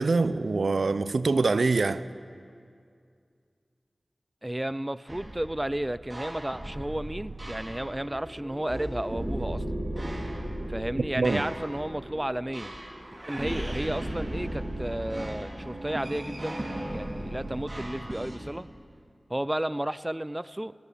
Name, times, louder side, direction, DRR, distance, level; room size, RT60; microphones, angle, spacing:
voice 1, 0.0-2.0 11.2-11.4, right 3 dB, 85° right, 0.5 m, -24 dB
voice 2, 4.4-9.6 10.7-12.7 13.3-16.7 16.9-18.7 19.3-20.7, right 1 dB, 20° right, 0.4 m, -32 dB
sound 1, 5.1-18.4, right 1 dB, 45° right, 4.4 m, -36 dB
22.5 x 17.0 x 7.0 m
wide cardioid pair, 50°, 0 cm